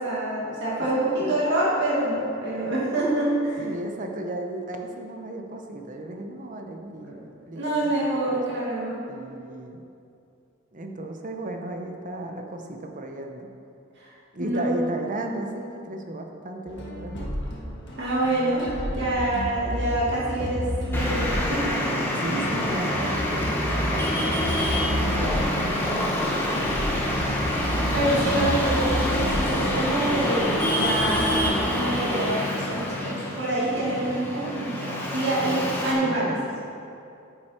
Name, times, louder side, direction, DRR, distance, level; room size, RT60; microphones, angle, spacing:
voice 1, 0.0-3.6 7.5-9.0 14.0-14.1 14.4-14.9 18.0-18.7 19.0-22.1 27.9-36.6, right 1 dB, 60° right, -7 dB, 2.4 m, -26 dB
voice 2, 3.6-8.6 9.1-9.8 10.7-13.5 14.3-17.3 22.1-26.6 28.2-28.4 36.0-36.6, right 1 dB, 40° right, 3 dB, 0.9 m, -35 dB
sound 1, 16.7-31.6, equal, 60° left, 1.5 m, -32 dB
Traffic noise roadway noise, 20.9-35.9, left 1 dB, 10° left, 1.1 m, -26 dB
9.4 x 7.7 x 4.5 m, 2.5 s
head